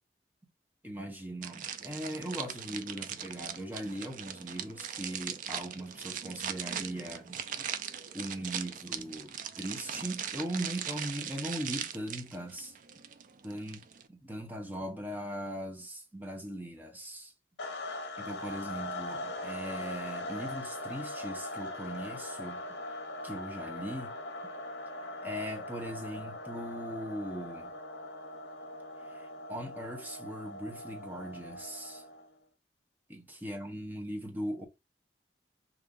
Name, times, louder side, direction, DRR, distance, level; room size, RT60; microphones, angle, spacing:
voice 1, 0.8-7.7 8.1-12.8 13.4-13.8 14.1-17.3 18.2-22.6 23.2-24.2 25.0-27.8 29.0-32.0 33.1-34.7, right 1 dB, 10° right, 0.7 m, -39 dB
sound 1, 1.4-14.1, right 8 dB, 45° right, 0.3 m, -40 dB
sound 2, 17.6-32.3, left 1 dB, 70° left, 0.7 m, -41 dB
2.9 x 2.6 x 3.6 m
head